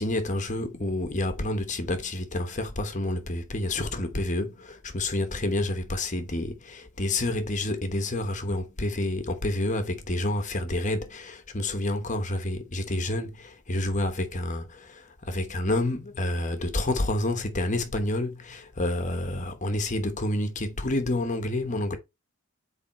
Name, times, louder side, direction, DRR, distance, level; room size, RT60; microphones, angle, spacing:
voice 1, 0.0-22.0, left 1 dB, 35° left, 1.0 m, -29 dB
8.5 x 3.5 x 4.3 m
head